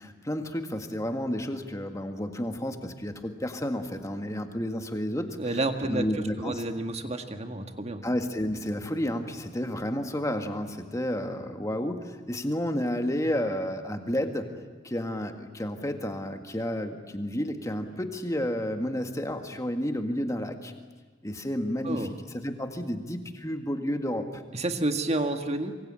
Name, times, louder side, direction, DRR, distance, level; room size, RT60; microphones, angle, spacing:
voice 1, 0.0-5.4 5.8-6.6 8.0-14.5 14.8-20.7 21.2-22.1 22.3-24.4, equal, 15° left, 6 dB, 1.8 m, -31 dB
voice 2, 5.4-8.0 21.8-22.1 24.5-25.7, right 2 dB, 30° right, 6 dB, 1.7 m, -30 dB
26.0 x 24.0 x 8.9 m, 1.3 s
head